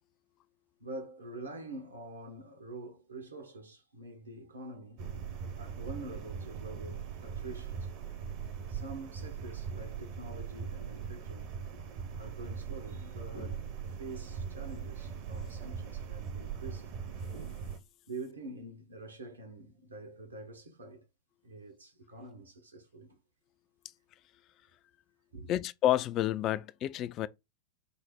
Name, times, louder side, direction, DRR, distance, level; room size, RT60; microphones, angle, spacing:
voice 1, 0.8-5.1 5.5-7.9 8.7-11.5 12.2-13.7 14.0-16.9 18.1-21.0 21.4-23.2 25.3-25.5, right 2 dB, 75° right, 0.9 m, -46 dB
sound 1, 5.0-17.8, right 7 dB, 50° right, 0.8 m, -40 dB
voice 2, 25.5-27.3, left 13 dB, 35° left, 0.3 m, -29 dB
5.2 x 2.0 x 4.4 m
figure-of-eight pair, 90°, 0 cm